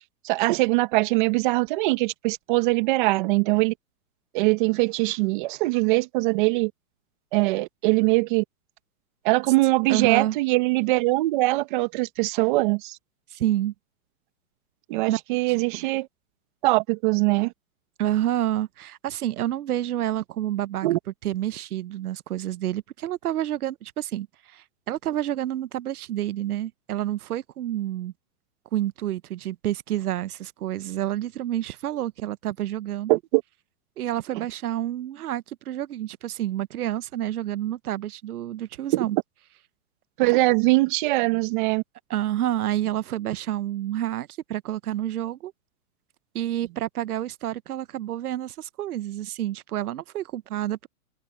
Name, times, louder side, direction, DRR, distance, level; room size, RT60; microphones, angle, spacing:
voice 1, 0.2-3.7 4.3-6.7 7.3-8.4 9.2-13.0 14.9-16.1 16.6-17.5 20.8-21.0 33.1-33.4 34.3-34.4 38.9-39.1 40.2-41.8, right 22 dB, 35° right, 1.6 m, -22 dB
voice 2, 9.9-10.4 13.3-13.7 15.1-15.2 15.5-15.6 18.0-20.9 21.2-28.1 28.7-33.1 34.0-39.2 42.1-45.5 46.3-50.9, right 13 dB, 80° right, 1.0 m, -29 dB
hypercardioid pair, 160°, 44 cm